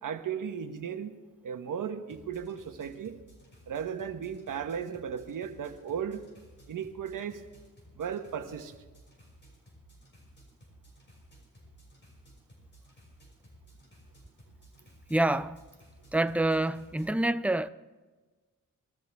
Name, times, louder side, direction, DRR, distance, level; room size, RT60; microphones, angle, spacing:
voice 1, 0.0-1.2 1.4-3.2 3.7-6.3 6.7-7.4 7.9-8.7, right 7 dB, 70° right, 1.3 m, -36 dB
sound 1, 2.1-17.1, equal, 35° left, 6.0 m, -56 dB
voice 2, 15.1-15.6 16.1-17.7, right 1 dB, 5° right, 0.4 m, -27 dB
21.0 x 13.5 x 3.5 m
cardioid pair, 100°, 33 cm